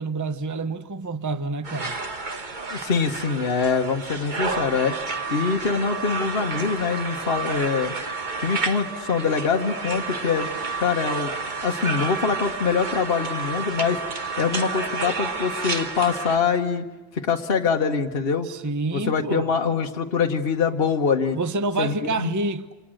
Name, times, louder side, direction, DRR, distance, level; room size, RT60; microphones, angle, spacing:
voice 1, 0.0-2.0 18.4-19.5 21.3-22.7, right 3 dB, 15° right, 0.7 m, -28 dB
sound 1, 1.6-16.4, right 4 dB, 40° right, 1.5 m, -30 dB
voice 2, 2.7-8.0 8.4-10.5 10.8-11.3 11.6-14.0 14.4-16.9 17.1-18.5 18.9-21.4 21.8-22.3, left 5 dB, 50° left, 1.4 m, -24 dB
29.0 x 26.5 x 6.5 m
omnidirectional pair, 1.3 m